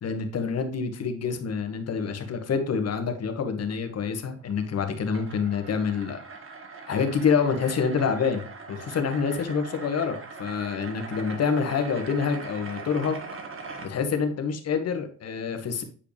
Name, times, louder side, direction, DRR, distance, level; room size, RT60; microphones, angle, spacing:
voice 1, 0.0-6.2 6.9-13.2 13.8-15.8, left 6 dB, 55° left, 7 dB, 1.5 m, -27 dB
sound 1, 4.4-13.9, right 4 dB, 45° right, 1.6 m, -41 dB
8.6 x 4.9 x 3.1 m, 0.41 s
cardioid pair, 90°, 30 cm